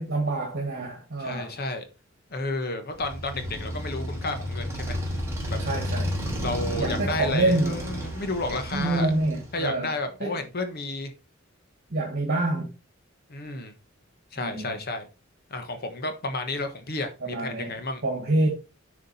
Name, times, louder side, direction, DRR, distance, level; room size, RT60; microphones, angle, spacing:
voice 1, 0.0-1.6 5.6-6.2 6.8-7.8 8.7-9.9 10.2-10.3 11.9-12.7 14.4-14.8 17.2-17.7 18.0-18.5, right 2 dB, 55° right, 1.8 m, -26 dB
voice 2, 1.2-1.8 2.3-5.2 5.5-5.6 6.4-9.1 9.5-11.1 13.3-13.7 14.3-15.1 15.5-18.0, left 2 dB, 50° left, 1.2 m, -32 dB
Motorcycle, 3.0-9.7, equal, 15° right, 3.2 m, -32 dB
9.6 x 5.0 x 4.2 m
head